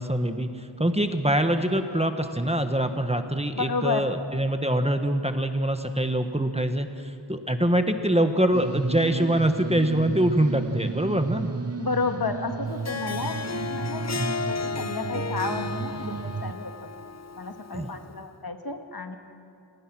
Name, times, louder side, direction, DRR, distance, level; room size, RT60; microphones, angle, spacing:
voice 1, 0.0-11.5 14.2-14.4 17.7-17.9, right 1 dB, 15° right, 7 dB, 1.4 m, -24 dB
voice 2, 3.5-4.1 11.8-16.2 16.4-16.9 17.4-19.2, left 4 dB, 55° left, 6 dB, 1.8 m, -31 dB
sound 1, 8.5-16.5, right 5 dB, 35° right, 0.8 m, -33 dB
Harp, 12.7-18.1, left 4 dB, 35° left, 0.6 m, -33 dB
29.0 x 19.0 x 6.2 m, 2.6 s
wide cardioid pair, 60°, 45 cm